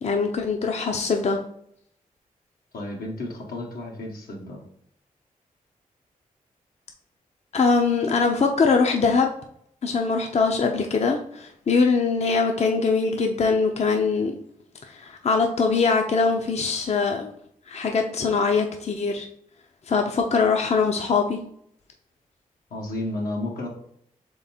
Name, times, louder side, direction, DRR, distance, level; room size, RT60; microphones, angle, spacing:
voice 1, 0.0-1.4 7.5-9.3 9.8-14.4 14.9-17.3 17.7-19.3 19.9-21.4, left 4 dB, 45° left, 3 dB, 0.6 m, -22 dB
voice 2, 2.7-4.6 22.7-23.7, left 1 dB, 85° left, -1 dB, 1.2 m, -32 dB
3.7 x 3.4 x 4.2 m, 0.69 s
cardioid pair, 55°, 15 cm